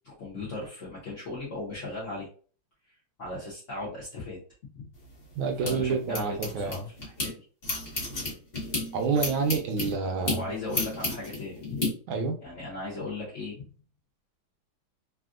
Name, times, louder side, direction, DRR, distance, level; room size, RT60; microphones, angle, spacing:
voice 1, 0.0-2.3 3.2-4.4 4.7-4.9 5.6-7.4 10.3-11.9 12.4-13.6, left 2 dB, 60° left, -5 dB, 0.8 m, -37 dB
sound 1, 4.9-7.3 7.6-11.9, left 2 dB, 35° left, 1.1 m, -33 dB
voice 2, 5.4-6.8 8.9-10.4 12.1-12.4, right 5 dB, 75° right, 5 dB, 1.3 m, -28 dB
3.4 x 2.4 x 2.4 m, 0.41 s
omnidirectional pair, 2.3 m